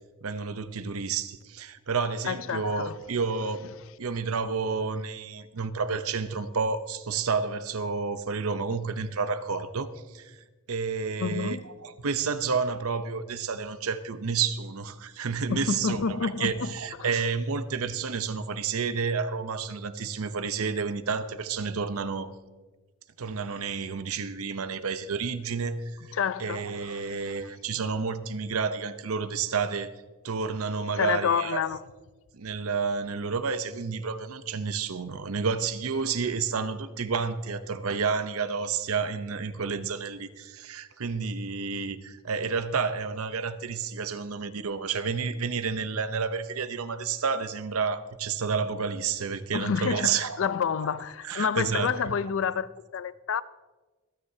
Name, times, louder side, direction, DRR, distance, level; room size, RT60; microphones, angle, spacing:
voice 1, 0.2-3.7 4.0-10.4 10.7-11.6 11.8-22.3 23.2-29.9 30.2-31.6 32.3-50.5 51.2-51.9, right 5 dB, 80° right, 0.7 m, -30 dB
voice 2, 2.2-3.0 11.2-11.6 15.5-16.7 17.0-17.1 26.1-27.1 31.0-31.8 49.5-53.4, left 6 dB, 60° left, 0.4 m, -29 dB
26.0 x 9.6 x 2.8 m
head